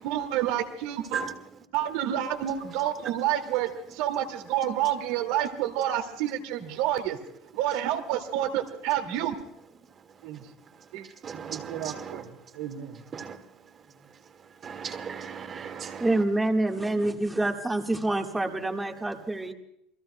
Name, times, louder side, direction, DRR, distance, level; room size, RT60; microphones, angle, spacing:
voice 1, 0.0-1.2 1.7-7.2 7.5-9.3 10.2-10.4 10.9-11.1 11.5-12.2 12.6-13.0, right 11 dB, 75° right, 6 dB, 2.1 m, -29 dB
voice 2, 11.2-12.2 13.1-13.4 14.6-16.2, right 6 dB, 35° right, 7 dB, 1.8 m, -36 dB
voice 3, 16.0-19.5, right 2 dB, 10° right, 2 dB, 1.6 m, -27 dB
29.0 x 21.5 x 2.2 m, 0.77 s
supercardioid pair, 120°, 0 cm